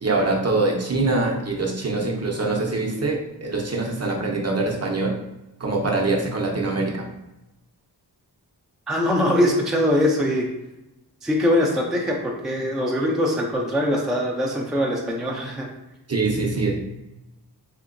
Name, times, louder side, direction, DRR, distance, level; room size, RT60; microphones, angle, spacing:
voice 1, 0.0-5.1 5.6-7.1 16.1-16.8, right 3 dB, 40° right, -1 dB, 0.7 m, -24 dB
voice 2, 8.9-10.5 11.2-15.7, left 1 dB, ahead, -1 dB, 0.5 m, -22 dB
3.2 x 2.8 x 2.5 m, 0.94 s
wide cardioid pair, 50°, 41 cm